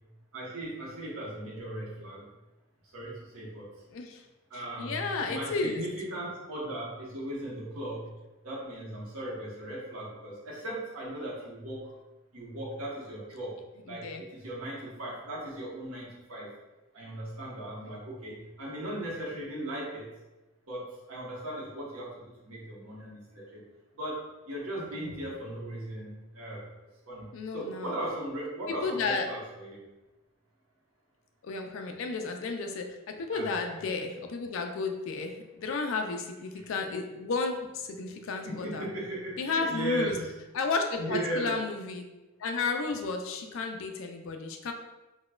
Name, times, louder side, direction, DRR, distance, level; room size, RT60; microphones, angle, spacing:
voice 1, 0.3-2.2 2.8-3.8 4.5-8.1 8.4-11.9 12.3-13.6 13.9-16.5 16.9-20.1 20.7-23.6 23.9-26.7 27.1-29.8 33.3-33.9 36.5-36.6 38.3-40.3 40.9-41.6, right 1 dB, 80° right, -5 dB, 1.0 m, -37 dB
voice 2, 3.9-4.2 4.5-5.8 13.9-14.2 24.9-25.2 27.3-27.9 28.8-29.3 31.4-38.9 39.4-40.2 40.5-42.0 42.4-44.7, left 4 dB, 65° left, 4 dB, 0.4 m, -33 dB
4.0 x 2.2 x 2.3 m, 1.1 s
head